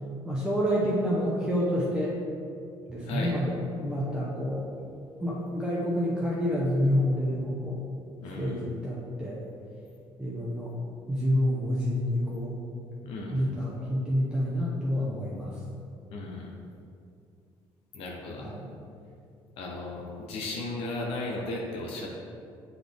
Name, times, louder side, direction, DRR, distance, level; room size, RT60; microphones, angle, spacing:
voice 1, 0.2-2.2 2.9-4.7 5.2-7.8 8.3-9.4 10.2-10.7 11.1-12.6 13.3-15.6 18.4-18.7, equal, 10° right, -7 dB, 0.8 m, -28 dB
voice 2, 8.2-8.6 13.0-13.5 16.1-16.5 17.9-18.5 19.6-22.1, left 2 dB, 80° left, -1 dB, 0.8 m, -35 dB
7.9 x 4.1 x 3.5 m, 2.4 s
cardioid pair, 130°, 10 cm